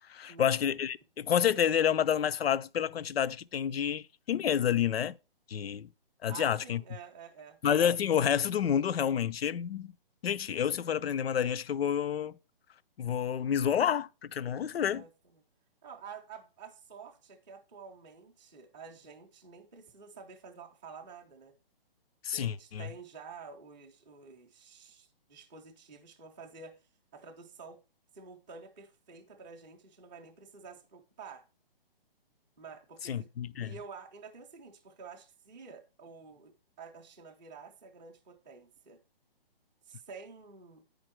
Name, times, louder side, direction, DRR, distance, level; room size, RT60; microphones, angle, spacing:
voice 1, 0.1-5.2 5.5-5.9 6.2-6.8 7.6-9.9 10.2-12.3 13.0-15.0 22.2-22.9 33.0-33.7, left 9 dB, 85° left, 0.5 m, -29 dB
voice 2, 6.3-7.6 14.9-15.4 15.8-21.5 22.3-27.8 28.1-31.4 32.6-33.3 33.6-39.0 39.9-40.8, right 5 dB, 5° right, 0.4 m, -50 dB
9.7 x 5.1 x 4.5 m
hypercardioid pair, 165°, 29 cm